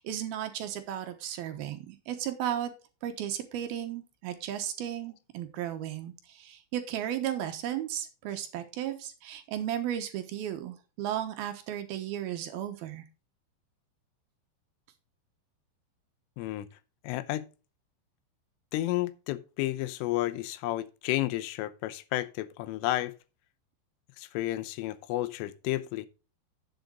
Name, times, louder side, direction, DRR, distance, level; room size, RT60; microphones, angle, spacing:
voice 1, 0.0-2.7 3.0-13.0, right 11 dB, 70° right, 2.5 m, -35 dB
voice 2, 16.4-16.7 17.0-17.5 18.7-23.1 24.2-26.1, left 16 dB, 85° left, 3.3 m, -31 dB
10.5 x 7.8 x 3.8 m
omnidirectional pair, 5.7 m